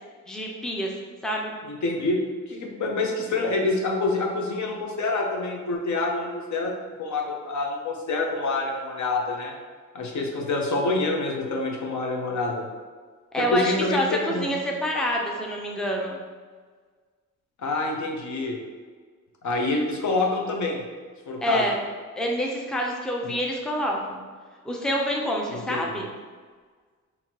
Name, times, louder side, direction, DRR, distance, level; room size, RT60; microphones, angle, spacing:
voice 1, 0.3-0.9 1.2-1.5 13.3-16.2 21.4-21.8 22.2-24.2 24.6-26.1, equal, ahead, 0 dB, 0.5 m, -27 dB
voice 2, 1.6-2.2 2.5-6.7 7.0-9.5 9.9-12.6 13.3-14.6 17.6-18.6 19.4-20.8 21.3-21.6 23.2-23.3 25.5-25.8, left 2 dB, 60° left, 1 dB, 0.8 m, -27 dB
4.2 x 2.8 x 2.9 m, 1.5 s
cardioid pair, 70°, 33 cm